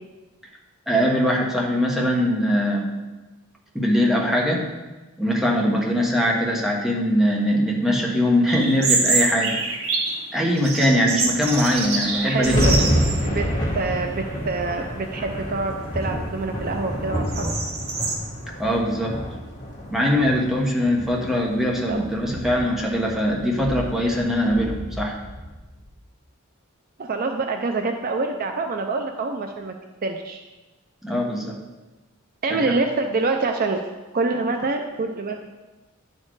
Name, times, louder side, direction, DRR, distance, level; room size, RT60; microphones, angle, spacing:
voice 1, 0.9-2.9 3.7-4.6 5.2-9.5 10.3-13.0 18.6-19.1 19.9-25.2 31.0-31.6 32.7-32.8, equal, ahead, -2 dB, 1.3 m, -21 dB
sound 1, 8.5-10.2 10.6-13.3 13.6-13.7 14.5-14.9 15.3-18.1, right 3 dB, 85° right, 1.7 m, -26 dB
sound 2, 11.7-25.9, equal, 35° left, 1.9 m, -29 dB
voice 2, 12.2-13.5 13.7-17.5 21.9-22.4 27.0-29.7 30.0-30.4 32.4-33.8 34.1-35.5, right 3 dB, 45° right, 5 dB, 0.5 m, -26 dB
10.5 x 4.3 x 4.7 m, 1.1 s
head